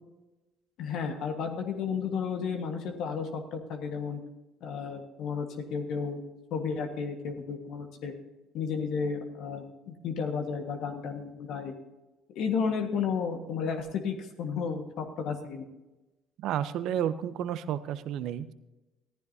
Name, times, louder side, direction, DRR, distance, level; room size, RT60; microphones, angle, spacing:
voice 1, 0.8-4.2 4.6-6.2 6.5-8.1 8.5-11.7 12.3-15.7, left 6 dB, 70° left, 4 dB, 1.5 m, -33 dB
voice 2, 16.4-18.5, right 10 dB, 70° right, 14 dB, 0.7 m, -31 dB
15.0 x 13.5 x 2.8 m, 1.0 s
supercardioid pair, 70°, 0 cm